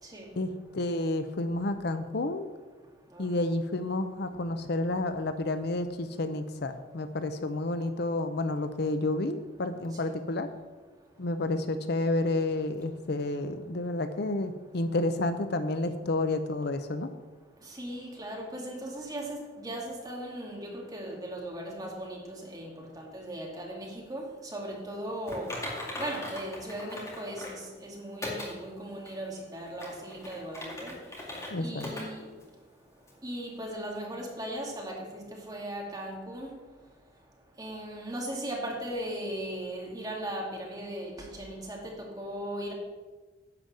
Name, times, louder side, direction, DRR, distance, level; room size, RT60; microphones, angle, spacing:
voice 1, 0.4-2.5 3.2-10.5 11.2-17.1 31.5-31.9, left 2 dB, 55° left, 9 dB, 0.6 m, -30 dB
voice 2, 17.7-25.5 26.0-30.9 31.6-32.3 33.2-36.5 37.6-42.7, right 1 dB, 20° right, -1 dB, 2.3 m, -38 dB
Typing, 25.3-27.6 28.2-28.5 29.1-29.2 29.7-31.5 31.8-32.0 32.4-32.5 33.1-33.2, left 1 dB, 15° left, 2.4 m, -39 dB
10.5 x 5.2 x 7.6 m, 1.3 s
head